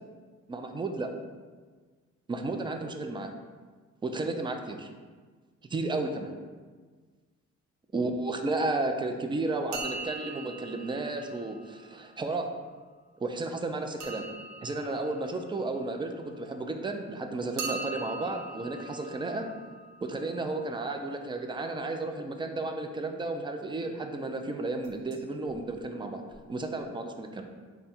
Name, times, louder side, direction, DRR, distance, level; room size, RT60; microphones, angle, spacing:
voice 1, 0.5-1.1 2.3-3.3 4.0-4.9 5.7-6.3 7.9-12.5 13.2-14.3 14.6-19.5 20.0-26.2 26.5-27.4, right 2 dB, 15° right, 5 dB, 0.3 m, -33 dB
sound 1, 9.7-12.4 14.0-16.7 17.6-21.4 24.8-25.2 25.5-25.6 26.3-26.4 26.6-26.7, right 3 dB, 70° right, 0.6 m, -42 dB
3.7 x 2.2 x 4.2 m, 1.5 s
cardioid pair, 90°, 30 cm